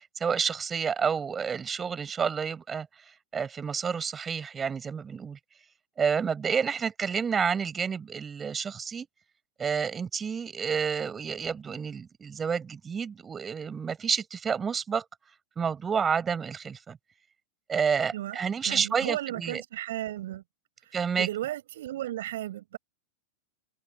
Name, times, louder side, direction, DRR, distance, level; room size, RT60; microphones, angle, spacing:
voice 1, 0.0-2.9 3.3-5.4 6.0-9.1 9.6-15.0 15.6-17.0 17.7-19.6 20.9-21.3, right 6 dB, 20° right, 7.5 m, -29 dB
voice 2, 18.1-20.4 20.8-22.8, right 13 dB, 55° right, 5.2 m, -35 dB
figure-of-eight pair, 90°, 0 cm